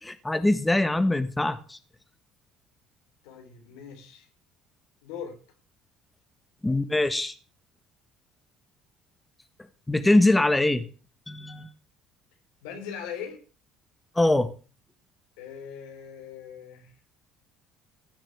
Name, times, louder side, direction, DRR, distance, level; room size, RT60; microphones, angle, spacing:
voice 1, 0.0-1.8 6.6-7.3 9.9-10.8 11.3-11.7 14.1-14.5, left 2 dB, 10° left, 1.6 m, -23 dB
voice 2, 3.2-4.3 5.0-5.4 12.6-13.4 15.4-16.9, left 7 dB, 85° left, 3.8 m, -40 dB
16.0 x 6.0 x 8.8 m
supercardioid pair, 85°, 0 cm